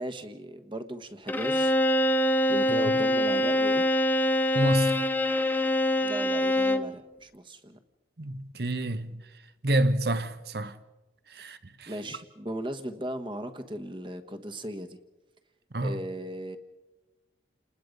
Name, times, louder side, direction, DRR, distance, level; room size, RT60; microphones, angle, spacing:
voice 1, 0.0-1.7 2.5-3.8 6.0-7.8 11.9-15.0 15.8-16.6, right 1 dB, 25° right, 1.3 m, -37 dB
Bowed string instrument, 1.3-7.0, left 1 dB, 10° left, 0.7 m, -24 dB
voice 2, 4.5-5.1 8.2-9.2 9.6-10.8 11.3-11.9 15.7-16.0, right 1 dB, 60° right, 1.1 m, -28 dB
29.5 x 20.0 x 5.3 m
head